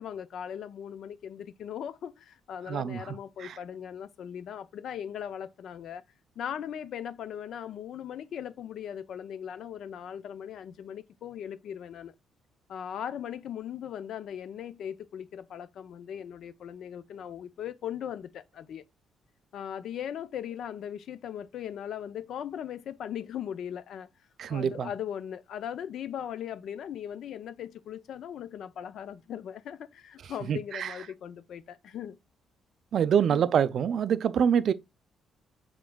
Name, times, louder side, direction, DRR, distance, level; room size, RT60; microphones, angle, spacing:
voice 1, 0.0-6.0 6.4-12.1 12.7-18.8 19.5-24.1 24.5-32.2 33.2-33.4, left 9 dB, 70° left, 0.4 m, -39 dB
voice 2, 2.7-3.6 24.4-24.9 30.5-30.9 32.9-34.7, right 8 dB, 60° right, 0.3 m, -26 dB
4.9 x 3.7 x 2.2 m
cardioid pair, 90°, 0 cm